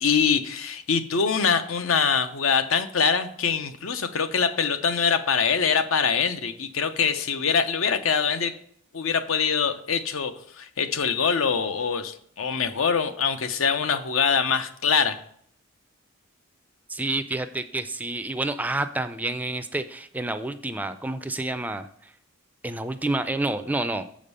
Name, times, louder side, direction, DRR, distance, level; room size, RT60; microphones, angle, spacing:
voice 1, 0.0-8.5 8.9-15.2, left 6 dB, 80° left, 9 dB, 0.7 m, -24 dB
voice 2, 16.9-22.1 22.6-24.1, right 2 dB, 10° right, 10 dB, 0.3 m, -29 dB
7.1 x 5.1 x 5.4 m, 0.65 s
head